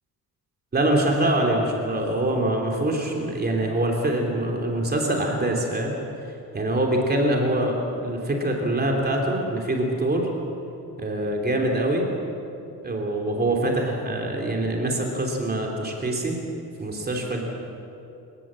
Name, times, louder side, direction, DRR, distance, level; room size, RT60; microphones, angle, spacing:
voice 1, 0.7-5.9 6.5-10.3 11.0-12.1 12.8-16.4 16.8-17.5, right 1 dB, 25° right, 0 dB, 3.1 m, -24 dB
29.5 x 16.5 x 7.6 m, 2.7 s
wide cardioid pair, 170°, 36 cm